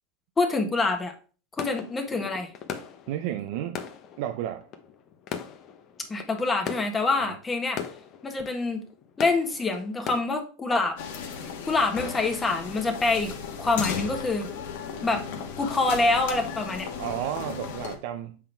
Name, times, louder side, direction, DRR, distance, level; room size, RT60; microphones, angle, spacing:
voice 1, 0.4-1.1 1.6-2.5 6.1-7.8 8.2-8.8 9.2-11.0 11.7-13.3 13.6-14.5 15.0-15.2 15.6-16.9, left 3 dB, 15° left, 1.5 m, -26 dB
sound 1, 1.6-10.2, left 7 dB, 40° left, 1.0 m, -40 dB
voice 2, 3.1-3.8 4.2-4.7 7.2-7.3 17.0-18.4, right 11 dB, 65° right, 0.6 m, -32 dB
sound 2, 11.0-18.0, left 6 dB, 70° left, 1.6 m, -35 dB
7.4 x 3.9 x 4.5 m
supercardioid pair, 125°, 0 cm